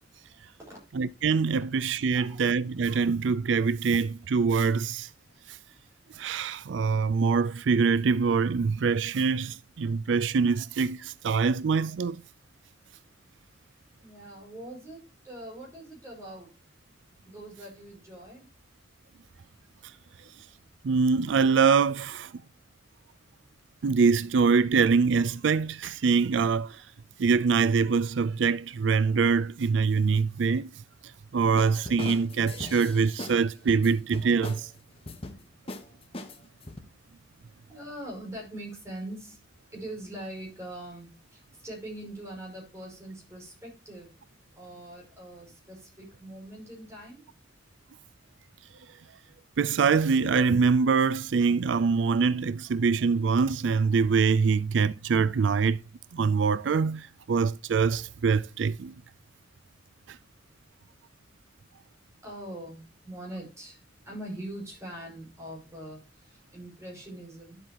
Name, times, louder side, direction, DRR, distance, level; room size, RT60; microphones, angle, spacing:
voice 1, 0.9-5.1 5.5-5.6 6.2-12.2 20.8-22.3 23.8-26.8 27.2-30.7 31.3-34.7 49.6-55.8 56.1-58.9 60.1-60.2, right 5 dB, 90° right, 0.4 m, -24 dB
voice 2, 14.0-16.5 17.2-18.5 37.7-39.4 39.7-44.1 44.6-47.3 62.2-63.8 64.1-67.6, right 1 dB, 15° right, 5.7 m, -42 dB
sound 1, 31.6-33.4 33.7-34.7 35.1-35.4 35.7-35.8 36.1-36.8, left 2 dB, 30° left, 1.2 m, -39 dB
11.5 x 7.9 x 2.9 m
head